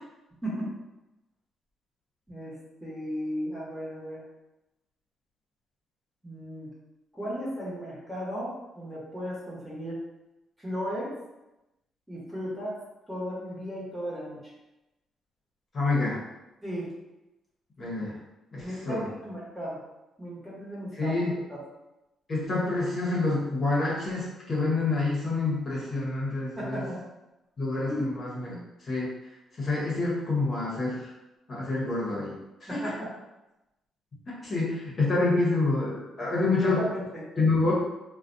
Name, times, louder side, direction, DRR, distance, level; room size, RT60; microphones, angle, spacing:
voice 1, 2.8-4.2 6.2-6.7 7.1-10.0 10.6-11.1 12.1-12.8 13.1-14.4 16.6-16.9 18.6-19.8 20.2-21.2 21.5-21.6 26.6-27.0 27.9-28.1 32.7-33.1 36.6-37.0, equal, 5° right, -8 dB, 1.0 m, -35 dB
voice 2, 15.7-16.2 17.8-18.2 18.5-19.0 21.0-21.3 22.3-26.8 27.6-29.1 29.6-31.1 31.5-32.3 32.7-32.8 34.3-36.8 37.4-37.7, left 3 dB, 45° left, -6 dB, 0.9 m, -27 dB
2.4 x 2.1 x 2.5 m, 0.96 s
cardioid pair, 90°, 0 cm